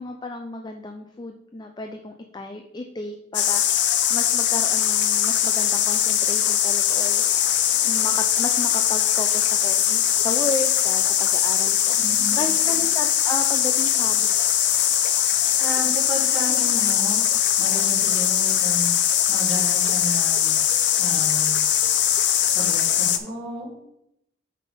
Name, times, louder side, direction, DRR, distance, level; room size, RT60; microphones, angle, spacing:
voice 1, 0.0-3.8 4.1-7.2 7.8-12.0 12.3-14.5, left 2 dB, 25° left, 5 dB, 0.4 m, -33 dB
sound 1, 3.3-23.2, left 10 dB, 70° left, 0.6 m, -21 dB
voice 2, 12.0-12.5 15.6-20.5 21.0-21.6 22.4-23.7, right 1 dB, 5° left, -7 dB, 3.0 m, -33 dB
5.5 x 5.2 x 5.1 m, 0.83 s
head